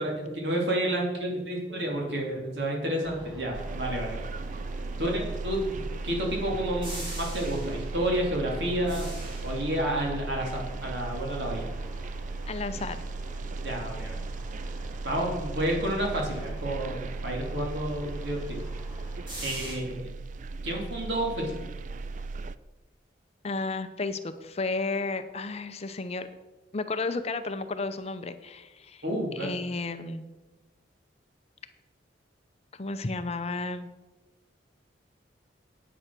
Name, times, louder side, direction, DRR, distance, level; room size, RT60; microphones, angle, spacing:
voice 1, 0.0-4.2 5.0-5.7 6.0-9.1 9.4-11.7 13.6-14.2 15.0-18.6 19.4-20.1 20.6-21.5 29.0-29.6, right 1 dB, 70° right, -1 dB, 3.1 m, -30 dB
sound 1, 3.0-19.8, equal, 25° right, 2.9 m, -44 dB
sound 2, 3.5-22.6, right 3 dB, 40° right, 0.4 m, -36 dB
voice 2, 12.5-13.0 23.4-26.3 26.7-29.0 29.3-30.2 32.7-33.9, left 3 dB, 35° left, 10 dB, 0.6 m, -32 dB
9.4 x 8.9 x 6.0 m, 1.1 s
head